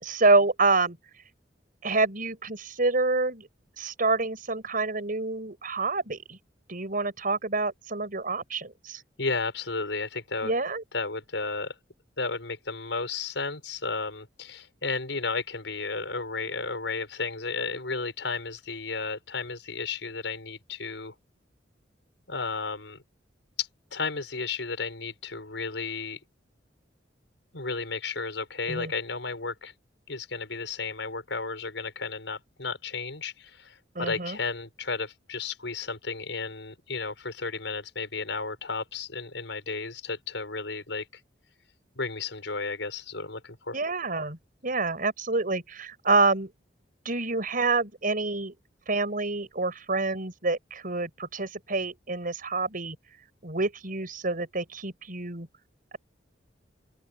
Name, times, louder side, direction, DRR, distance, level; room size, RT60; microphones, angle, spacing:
voice 1, 0.0-1.0 1.8-3.5 3.8-6.4 6.7-9.0 10.4-10.8 28.7-28.9 33.9-34.4 43.7-44.4 44.6-46.5 47.0-48.5 48.9-53.0 53.4-55.5, right 3 dB, 50° right, 6.0 m, -27 dB
voice 2, 9.2-10.5 10.9-11.8 12.2-21.1 22.3-23.0 23.6-26.2 27.5-29.7 30.1-41.2 42.0-43.8, left 4 dB, 80° left, 5.8 m, -33 dB
open air
head